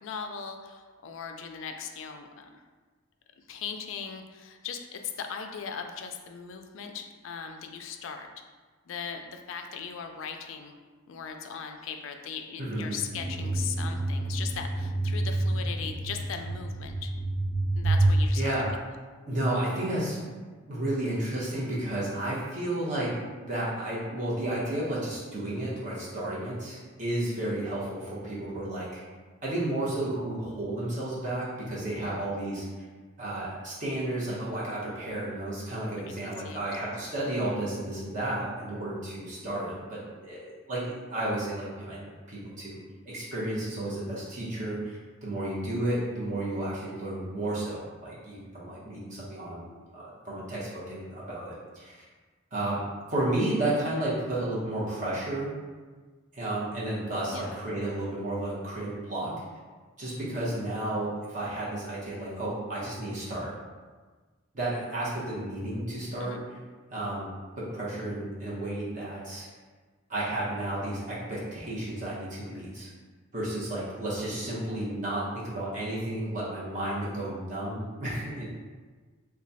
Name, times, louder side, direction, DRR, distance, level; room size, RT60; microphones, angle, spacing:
voice 1, 0.0-2.6 3.5-8.3 8.9-10.7 11.1-17.1 17.8-18.5 32.0-32.3 36.2-36.6 57.3-57.5 66.2-66.4, left 6 dB, 70° left, 5 dB, 0.3 m, -39 dB
voice 2, 12.6-12.9 18.3-18.7 19.3-20.2 20.7-23.1 23.4-29.0 29.4-32.6 33.2-42.8 43.0-52.0 52.5-55.6 56.3-59.3 60.0-63.5 64.5-66.6 66.9-67.3 67.6-69.5 70.1-72.9 73.3-78.4, right 1 dB, 35° right, -8 dB, 1.0 m, -32 dB
sound 1, 13.1-18.2, right 2 dB, 55° right, 0.4 m, -28 dB
3.1 x 2.3 x 4.0 m, 1.4 s
head